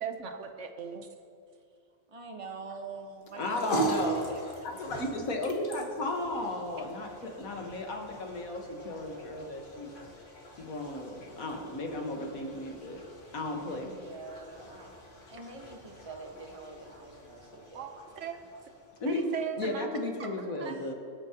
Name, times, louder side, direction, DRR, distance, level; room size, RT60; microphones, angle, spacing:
voice 1, 0.0-1.1 17.7-18.4 19.1-19.9 20.4-20.8, right 7 dB, 60° right, 7 dB, 1.2 m, -38 dB
voice 2, 2.1-4.8 13.7-18.2 19.4-19.6 20.2-20.3 20.6-20.9, right 3 dB, 25° right, 2 dB, 1.3 m, -45 dB
sound 1, 3.2-19.7, right 2 dB, 40° left, 1.6 m, -40 dB
voice 3, 3.4-4.3 4.6-10.0 10.6-13.0 13.3-13.9 19.0-19.3 19.6-20.9, left 2 dB, 80° left, 2 dB, 1.9 m, -35 dB
25.0 x 8.5 x 3.0 m, 2.5 s
omnidirectional pair, 1.4 m